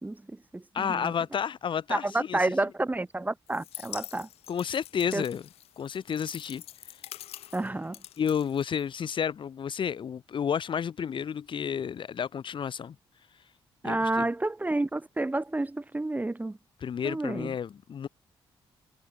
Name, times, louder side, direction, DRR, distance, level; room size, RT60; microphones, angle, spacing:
voice 1, 0.0-1.1 1.9-4.3 5.1-5.2 7.5-8.0 13.8-16.6 17.0-17.5, right 2 dB, 15° right, 4.0 m, -30 dB
voice 2, 0.7-2.4 4.5-5.4 5.8-6.6 6.9-7.0 8.2-12.9 13.8-14.3 16.8-18.1, left 7 dB, 55° left, 1.1 m, -31 dB
sound 1, 3.5-9.2, left 13 dB, 90° left, 1.6 m, -45 dB
cardioid pair, 85°, 10 cm